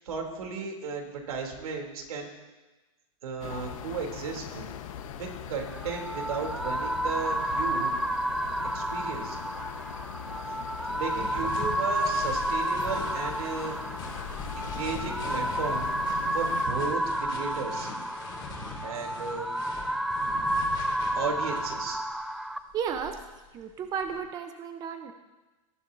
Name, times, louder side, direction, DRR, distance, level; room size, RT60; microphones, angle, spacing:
voice 1, 0.0-2.3 3.2-4.7 5.2-7.9 8.7-9.4 10.9-13.7 14.6-15.9 16.3-17.9 18.8-19.5 21.1-22.0, right 5 dB, 90° right, 2 dB, 3.2 m, -35 dB
sound 1, 3.4-16.7, left 9 dB, 65° left, 1.2 m, -41 dB
sound 2, 5.6-22.6, right 1 dB, ahead, 0.4 m, -31 dB
sound 3, 10.9-22.1 22.7-24.2, left 4 dB, 25° left, 2.4 m, -42 dB
voice 2, 22.7-23.2 23.5-25.1, right 7 dB, 20° right, 6 dB, 0.8 m, -33 dB
19.0 x 12.0 x 2.7 m, 1.1 s
supercardioid pair, 150°, 18 cm